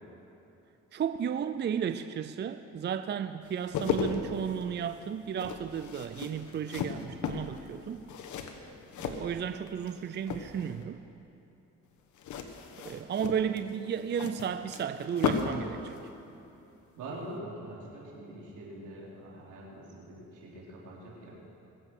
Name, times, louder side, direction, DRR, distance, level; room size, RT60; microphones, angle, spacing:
voice 1, 0.9-8.0 9.0-11.0 12.8-16.0, right 8 dB, 35° right, 11 dB, 0.5 m, -33 dB
sound 1, 3.5-9.9 10.2-10.8 12.2-15.6 15.9-16.1, left 6 dB, 75° left, 1.3 m, -35 dB
voice 2, 17.0-21.4, right 1 dB, 85° right, -4 dB, 3.8 m, -44 dB
21.5 x 7.9 x 6.2 m, 2.8 s
cardioid pair, 90°, 30 cm